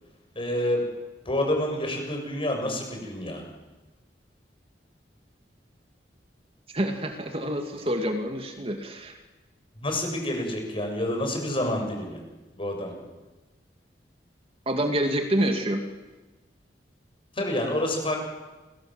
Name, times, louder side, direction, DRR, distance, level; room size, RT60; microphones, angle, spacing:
voice 1, 0.4-0.8 1.3-3.4 9.8-12.2 12.6-12.9 17.4-18.2, left 1 dB, 30° left, 2 dB, 7.4 m, -28 dB
voice 2, 6.7-9.2 14.7-15.8, right 1 dB, 35° right, 5 dB, 2.3 m, -27 dB
29.0 x 22.5 x 7.9 m, 1.2 s
head